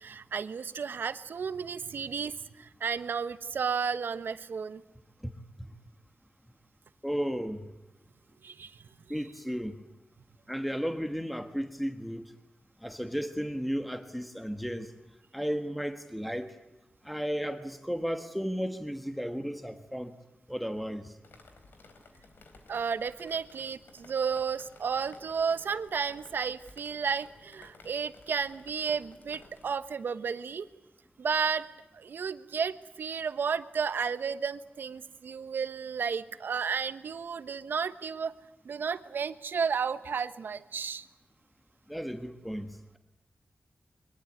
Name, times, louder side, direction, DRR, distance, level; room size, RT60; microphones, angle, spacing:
voice 1, 0.0-4.8 8.4-8.8 22.7-30.7 31.2-31.7 31.9-38.3 38.6-41.0, right 6 dB, 90° right, 13 dB, 1.2 m, -32 dB
voice 2, 7.0-7.7 9.1-9.7 10.5-12.3 12.8-14.9 15.3-16.5 17.0-20.1 20.5-21.1 41.9-43.0, equal, ahead, 8 dB, 1.4 m, -34 dB
Drip, 21.2-29.8, left 3 dB, 85° left, 4.0 m, -56 dB
23.5 x 21.5 x 9.4 m, 0.95 s
wide cardioid pair, 150°, 3 cm